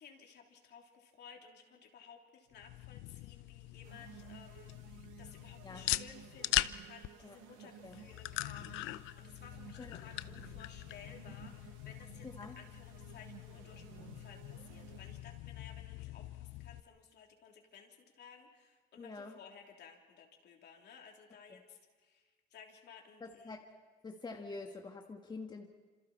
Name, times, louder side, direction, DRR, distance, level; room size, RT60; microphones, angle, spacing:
voice 1, 0.0-23.6, left 7 dB, 60° left, 1 dB, 3.4 m, -57 dB
sound 1, 2.5-16.8, left 17 dB, 75° left, 0.6 m, -42 dB
sound 2, 3.8-15.4, right 11 dB, 85° right, 0.9 m, -56 dB
voice 2, 12.2-12.6 19.0-19.3 21.5-21.6 23.2-23.6 24.0-25.7, left 3 dB, 20° left, 3 dB, 1.4 m, -46 dB
27.0 x 26.5 x 4.4 m, 1.4 s
cardioid pair, 100°, 20 cm